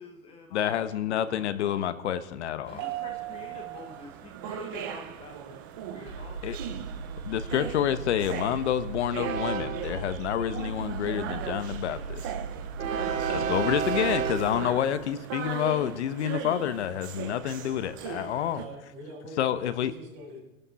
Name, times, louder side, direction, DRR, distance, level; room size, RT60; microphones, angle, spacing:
voice 1, 0.0-2.0 2.5-5.6 5.9-6.8, left 4 dB, 15° left, 4 dB, 1.0 m, -47 dB
voice 2, 0.5-2.8 6.4-6.6 7.3-12.3 13.0-18.6 19.4-19.9, left 10 dB, 55° left, 13 dB, 1.1 m, -28 dB
Airport Ambience, 2.7-18.6, right 10 dB, 15° right, 0.4 m, -39 dB
Train, 6.1-14.7, right 6 dB, 70° right, 1.8 m, -33 dB
voice 3, 18.5-20.4, right 1 dB, 55° right, -1 dB, 7.9 m, -44 dB
23.5 x 12.0 x 4.1 m, 0.99 s
hypercardioid pair, 160°, 41 cm